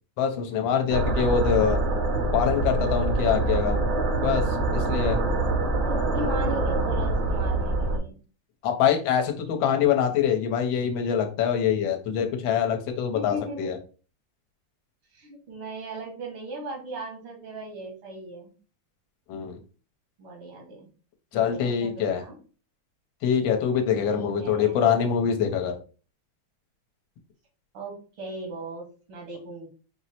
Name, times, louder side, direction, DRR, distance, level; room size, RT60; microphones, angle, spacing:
voice 1, 0.2-1.8 2.3-3.8 4.2-4.4 4.7-5.2 8.6-13.8 19.3-19.6 21.3-22.2 23.2-25.7, left 8 dB, 70° left, 4 dB, 1.4 m, -24 dB
sound 1, 0.9-8.0, right 2 dB, 65° right, 1.2 m, -25 dB
voice 2, 5.9-8.2 13.1-13.7 15.1-18.5 20.2-20.9 21.3-22.4 24.0-24.8 27.7-29.7, right 2 dB, 80° right, 0 dB, 2.3 m, -38 dB
4.5 x 2.0 x 4.1 m, 0.37 s
omnidirectional pair, 2.4 m